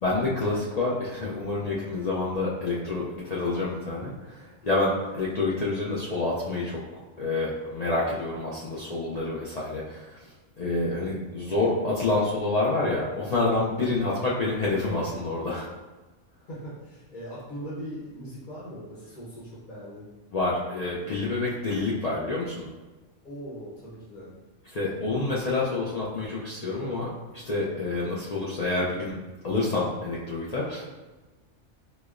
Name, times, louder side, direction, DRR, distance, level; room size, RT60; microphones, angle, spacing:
voice 1, 0.0-6.8 7.2-10.2 10.6-15.7 20.3-22.6 24.7-27.1 27.3-29.2 29.4-30.9, left 2 dB, 65° left, -6 dB, 0.4 m, -28 dB
voice 2, 16.5-20.1 23.2-24.3, equal, 45° left, -7 dB, 0.8 m, -40 dB
4.9 x 2.0 x 2.4 m, 1.2 s
omnidirectional pair, 1.2 m